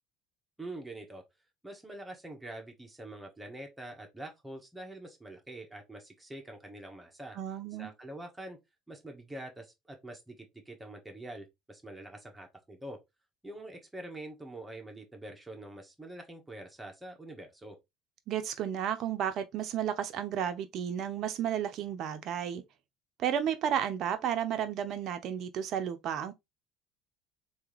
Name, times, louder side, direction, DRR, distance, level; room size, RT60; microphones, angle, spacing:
voice 1, 0.6-1.2 1.6-7.4 7.8-8.6 8.9-13.0 13.4-17.8, right 1 dB, 10° right, 1.5 m, -45 dB
voice 2, 7.3-7.9 18.3-22.6 23.2-26.3, right 9 dB, 55° right, 0.7 m, -32 dB
3.4 x 2.9 x 3.3 m
hypercardioid pair, 70°, 0 cm